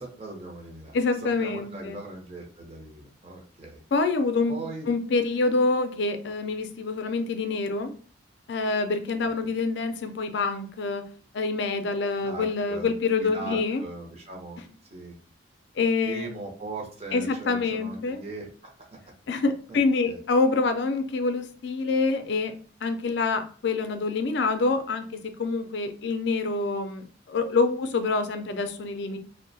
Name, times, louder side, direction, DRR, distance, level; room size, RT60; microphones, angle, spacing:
voice 1, 0.0-3.8 4.5-4.9 9.2-9.5 12.2-12.9 13.2-14.6 14.9-15.2 16.0-18.5 19.7-19.8 20.1-20.2, right 2 dB, 35° right, 0 dB, 0.7 m, -39 dB
voice 2, 0.9-2.0 3.9-4.6 4.9-7.9 8.5-11.0 11.3-13.8 15.8-16.4 17.1-18.2 19.3-22.5 22.8-25.1 25.4-29.2, left 3 dB, 65° left, 8 dB, 0.4 m, -26 dB
2.8 x 2.0 x 2.6 m, 0.43 s
head